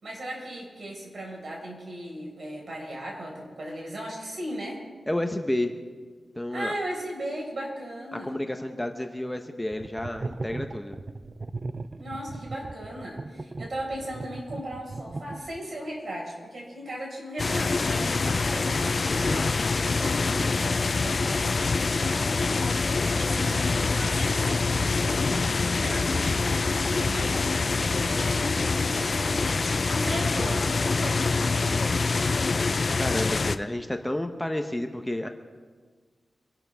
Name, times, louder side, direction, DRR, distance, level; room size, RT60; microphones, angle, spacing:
voice 1, 0.0-4.8 6.5-8.3 12.0-29.5 29.8-32.1, right 1 dB, 55° right, -1 dB, 5.0 m, -37 dB
voice 2, 5.1-5.7 6.4-6.7 8.1-11.0 33.0-35.3, left 1 dB, 10° left, 5 dB, 0.9 m, -30 dB
sound 1, 9.7-15.8, right 3 dB, 40° right, 0.5 m, -37 dB
sound 2, 17.4-33.6, left 4 dB, 50° left, 0.5 m, -25 dB
25.5 x 12.0 x 3.5 m, 1.5 s
wide cardioid pair, 85°, 0 cm